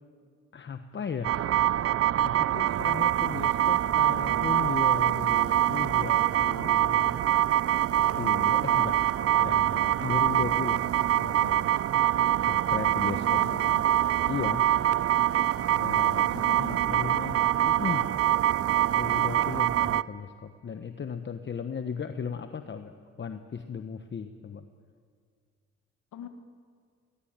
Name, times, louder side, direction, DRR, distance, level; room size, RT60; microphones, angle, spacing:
voice 1, 0.5-1.4 2.2-7.2 8.1-9.0 9.4-10.8 11.1-11.6 12.4-13.4 14.3-14.7 15.7-18.1 18.9-22.9 23.2-24.6, left 6 dB, 40° left, 8 dB, 1.1 m, -36 dB
sound 1, 1.2-20.0, right 12 dB, 50° right, 0.6 m, -24 dB
voice 2, 13.3-13.8 16.2-17.2 26.1-26.3, left 8 dB, 75° left, 7 dB, 1.6 m, -42 dB
23.5 x 20.5 x 8.9 m, 2.1 s
cardioid pair, 90°, 30 cm